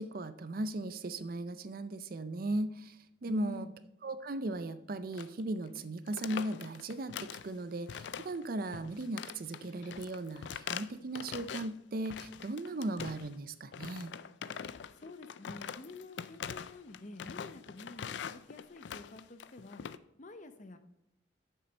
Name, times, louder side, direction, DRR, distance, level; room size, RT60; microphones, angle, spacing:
voice 1, 0.0-3.0 3.2-3.7 4.0-14.1, right 2 dB, 50° right, 12 dB, 0.5 m, -37 dB
voice 2, 3.3-3.7 15.0-19.8 20.2-20.8, left 2 dB, 40° left, 9 dB, 0.7 m, -48 dB
sound 1, 5.1-5.4 5.7-5.8 6.1-7.5 7.9-8.5 8.7-11.7 12.1-13.4 13.7-20.0, left 7 dB, 70° left, 0.4 m, -43 dB
7.6 x 6.8 x 5.4 m, 0.83 s
head